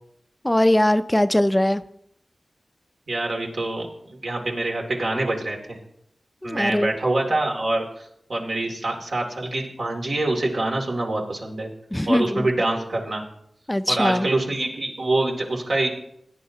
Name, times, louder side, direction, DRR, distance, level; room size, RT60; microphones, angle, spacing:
voice 1, 0.4-1.8 6.4-6.9 11.9-12.5 13.7-14.3, left 1 dB, 15° left, 12 dB, 0.5 m, -21 dB
voice 2, 3.1-5.8 6.4-7.8 8.3-11.7 12.1-13.2 13.9-15.9, right 2 dB, 75° right, 0 dB, 2.5 m, -25 dB
17.5 x 10.0 x 2.8 m, 0.74 s
wide cardioid pair, 60°, 0 cm